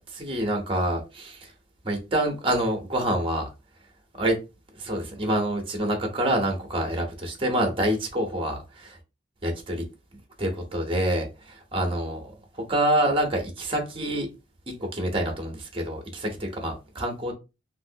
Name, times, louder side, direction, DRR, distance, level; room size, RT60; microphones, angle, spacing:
voice 1, 0.1-1.5 1.8-3.5 4.2-4.4 4.7-9.0 9.4-9.8 10.4-12.2 12.5-14.3 14.7-17.3, right 1 dB, 30° right, 0.9 m, -27 dB
3.2 x 2.6 x 2.7 m
head